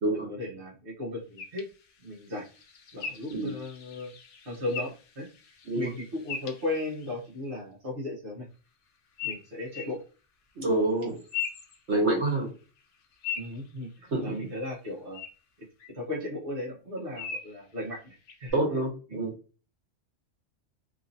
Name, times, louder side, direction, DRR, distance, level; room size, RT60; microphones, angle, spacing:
voice 1, 0.1-1.7 2.0-2.5 2.9-4.1 4.4-5.3 5.7-8.5 9.2-10.0 10.7-10.9 13.4-15.2 15.9-18.6 19.1-19.2, left 2 dB, 50° right, -4 dB, 1.1 m, -36 dB
sound 1, 1.4-7.2 9.2-10.0 11.0-12.4 12.8-14.5 15.1-15.3 15.8-15.9 17.2-17.6 18.3-18.5, left 7 dB, 75° left, 0.9 m, -40 dB
voice 2, 10.6-11.1 11.9-12.5 14.1-14.2 18.5-19.3, right 2 dB, 65° right, -2 dB, 1.3 m, -26 dB
3.0 x 2.7 x 2.5 m, 0.36 s
omnidirectional pair, 1.3 m